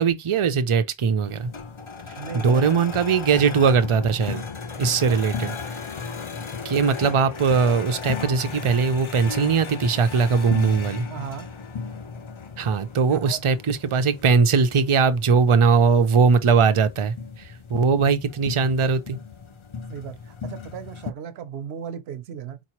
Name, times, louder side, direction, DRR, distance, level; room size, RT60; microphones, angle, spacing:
voice 1, 0.0-1.5 2.3-4.4 4.8-5.5 6.6-11.1 12.6-17.1 17.7-19.2, right 5 dB, 45° right, 0.4 m, -20 dB
sound 1, 1.2-21.1, left 5 dB, 40° left, 0.5 m, -35 dB
voice 2, 2.2-2.7 5.1-5.2 11.1-11.5 13.1-13.4 19.9-22.6, right 8 dB, 90° right, 0.9 m, -36 dB
4.5 x 2.9 x 2.9 m
omnidirectional pair, 1.0 m